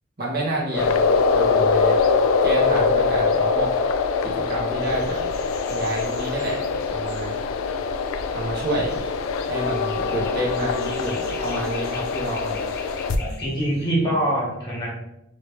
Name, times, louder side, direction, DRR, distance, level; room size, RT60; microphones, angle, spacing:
voice 1, 0.2-2.0 2.4-3.7 4.2-5.2 5.7-6.6 6.9-7.4 8.3-8.9 9.4-12.6, right 1 dB, 50° right, -4 dB, 0.9 m, -28 dB
sound 1, 0.7-13.2, left 4 dB, 75° left, 0.3 m, -23 dB
sound 2, 4.8-13.9, left 4 dB, 50° left, 0.8 m, -43 dB
voice 2, 13.2-14.9, right 1 dB, 20° left, -6 dB, 1.5 m, -24 dB
3.2 x 3.0 x 3.1 m, 0.86 s
head